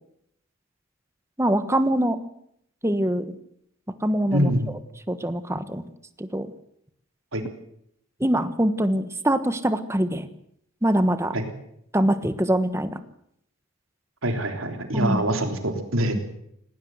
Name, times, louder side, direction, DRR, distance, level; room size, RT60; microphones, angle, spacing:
voice 1, 1.4-2.2 2.8-3.4 4.0-4.8 5.1-5.8 6.3-6.5 8.2-10.3 10.8-11.3 11.9-13.0 14.9-15.3 16.1-16.2, right 1 dB, 15° right, 11 dB, 1.3 m, -23 dB
voice 2, 4.3-4.7 7.3-7.4 11.3-11.5 14.2-16.2, right 1 dB, 75° right, 5 dB, 3.6 m, -24 dB
19.0 x 19.0 x 8.0 m, 0.74 s
head